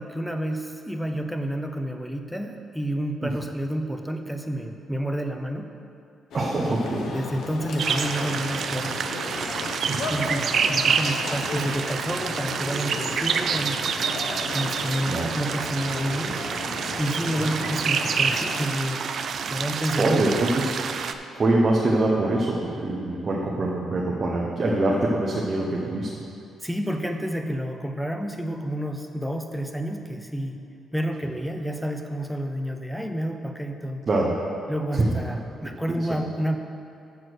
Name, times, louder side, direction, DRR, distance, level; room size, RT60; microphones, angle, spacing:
voice 1, 0.0-5.7 6.7-9.1 10.1-13.8 14.5-16.4 17.0-19.0 19.5-20.3 26.6-30.6 30.9-34.0 34.7-36.6, equal, ahead, 5 dB, 0.6 m, -30 dB
sound 1, 6.3-18.7, left 3 dB, 65° left, 0.9 m, -35 dB
voice 2, 6.3-7.1 9.9-10.2 15.1-15.3 20.0-20.8 21.3-26.1 34.1-34.3 34.9-35.0, right 2 dB, 30° right, -3 dB, 0.8 m, -24 dB
sound 2, 7.8-21.1, right 6 dB, 50° right, 0.4 m, -28 dB
7.3 x 6.2 x 6.2 m, 2.6 s
cardioid pair, 140°, 0 cm